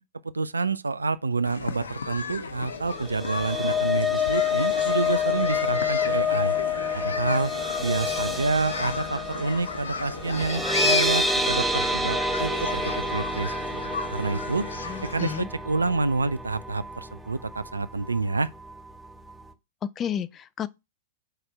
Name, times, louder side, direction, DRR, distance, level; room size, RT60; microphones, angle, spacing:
voice 1, 0.3-6.5 6.9-7.5 7.8-13.5 14.1-14.7 15.0-18.5, right 3 dB, 85° right, 0.5 m, -28 dB
sound 1, 1.4-15.4, left 4 dB, 75° left, 0.8 m, -34 dB
sound 2, 2.9-17.2 17.5-17.8 18.1-18.2, left 3 dB, ahead, 1.0 m, -28 dB
voice 2, 14.9-15.5 20.0-20.7, left 9 dB, 25° left, 0.6 m, -31 dB
6.6 x 4.4 x 6.1 m
figure-of-eight pair, 105°, 0 cm